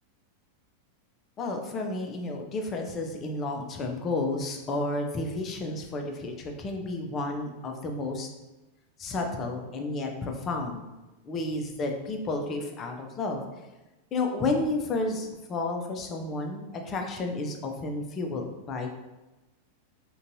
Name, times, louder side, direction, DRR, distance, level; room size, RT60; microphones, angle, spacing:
voice 1, 1.4-8.3 9.0-10.8 11.2-13.4 14.1-18.9, left 2 dB, 30° left, 3 dB, 0.5 m, -31 dB
3.8 x 2.3 x 2.6 m, 1.1 s
figure-of-eight pair, 90°, 0 cm